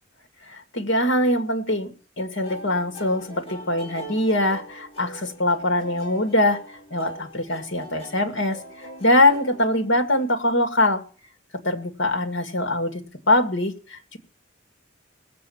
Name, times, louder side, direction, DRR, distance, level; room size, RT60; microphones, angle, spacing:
voice 1, 0.5-1.9 2.2-6.6 6.9-11.0 11.6-14.2, left 1 dB, 65° left, 7 dB, 2.2 m, -23 dB
sound 1, 2.4-10.4, right 1 dB, 30° left, 4.7 m, -42 dB
19.0 x 7.6 x 7.2 m, 0.40 s
head